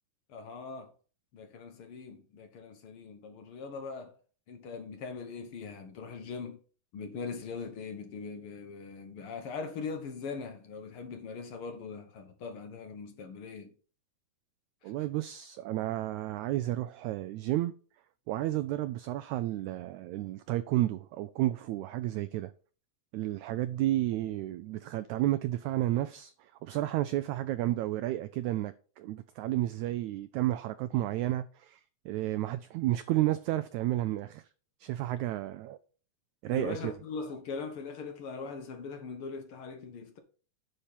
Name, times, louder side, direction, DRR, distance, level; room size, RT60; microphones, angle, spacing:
voice 1, 0.3-0.9 1.3-4.2 4.5-6.6 6.9-13.7 14.8-14.9 36.5-40.2, left 5 dB, 65° left, 1.4 m, -41 dB
voice 2, 14.8-17.7 18.3-22.5 23.1-34.4 34.8-35.8 36.4-36.9, right 15 dB, 90° right, 1.6 m, -31 dB
10.0 x 4.3 x 5.5 m
omnidirectional pair, 3.9 m